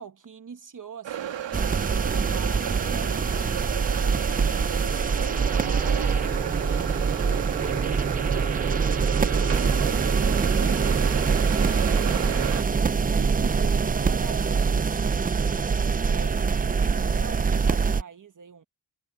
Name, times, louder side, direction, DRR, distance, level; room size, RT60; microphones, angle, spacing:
voice 1, 0.0-3.7 4.3-5.0 5.4-8.7 9.0-12.1 13.2-15.0 16.0-18.6, right 6 dB, 45° right, 1.1 m, -43 dB
sound 1, 1.0-12.6, right 10 dB, 90° right, 1.5 m, -32 dB
sound 2, 1.5-18.0, right 5 dB, 20° right, 0.3 m, -24 dB
wide cardioid pair, 120°, 43 cm